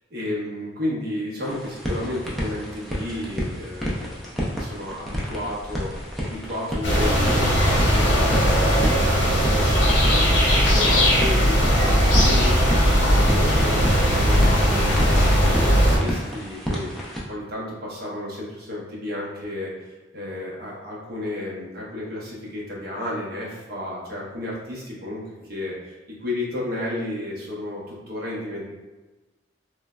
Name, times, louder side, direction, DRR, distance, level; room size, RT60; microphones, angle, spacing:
voice 1, 0.1-15.7 15.9-19.7 20.1-28.7, left 1 dB, 55° right, -5 dB, 0.7 m, -32 dB
sound 1, 1.4-17.2, equal, ahead, 0.4 m, -30 dB
sound 2, 6.8-16.0, equal, 85° left, 0.8 m, -18 dB
3.1 x 2.0 x 2.3 m, 1.2 s
head